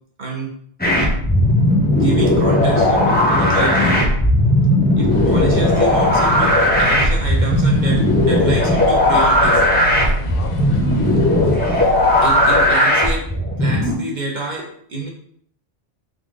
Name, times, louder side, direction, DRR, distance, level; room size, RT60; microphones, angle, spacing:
voice 1, 0.2-0.5 1.7-4.0 4.9-6.5 6.8-9.6 12.2-13.3 13.6-15.1, right 2 dB, 50° right, -1 dB, 0.8 m, -27 dB
sound 1, 0.8-13.9, left 1 dB, 10° left, 0.5 m, -16 dB
sound 2, 5.1-12.7, equal, 65° left, 0.8 m, -28 dB
3.8 x 2.3 x 3.6 m, 0.64 s
omnidirectional pair, 1.0 m